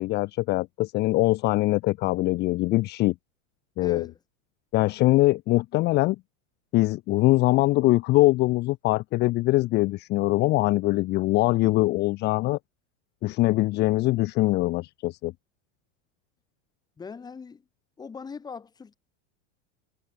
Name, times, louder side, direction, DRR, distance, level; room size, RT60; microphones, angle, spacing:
voice 1, 0.0-3.1 3.8-4.1 4.7-6.2 6.7-12.6 13.2-15.3, left 19 dB, 25° left, 1.1 m, -23 dB
voice 2, 3.8-4.2 17.0-17.6 18.0-19.0, left 5 dB, 10° left, 2.5 m, -40 dB
supercardioid pair, 175°, 38 cm